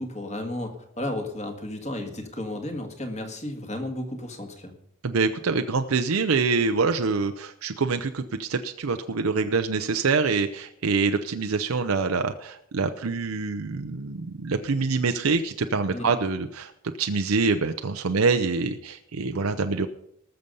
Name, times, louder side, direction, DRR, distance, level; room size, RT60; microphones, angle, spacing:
voice 1, 0.0-4.7 15.9-16.1, left 1 dB, 30° left, 4 dB, 1.8 m, -33 dB
voice 2, 5.0-16.7 17.0-19.9, right 4 dB, 85° right, 7 dB, 0.6 m, -25 dB
19.5 x 6.8 x 5.5 m, 0.78 s
head